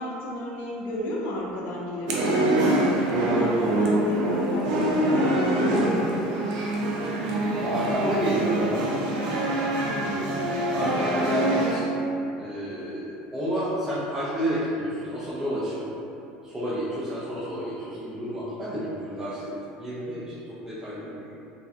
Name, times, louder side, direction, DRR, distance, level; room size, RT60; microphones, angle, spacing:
voice 1, 0.0-5.4 9.8-10.2, left 1 dB, 50° left, -3 dB, 0.4 m, -33 dB
sound 1, 2.1-11.7, right 1 dB, 90° right, 0.4 m, -24 dB
voice 2, 7.6-8.9 10.0-10.3 10.7-12.0 12.4-15.9 16.4-19.5 19.8-21.3, equal, 10° right, -12 dB, 0.3 m, -30 dB
2.5 x 2.1 x 2.4 m, 2.8 s
cardioid pair, 165°, 4 cm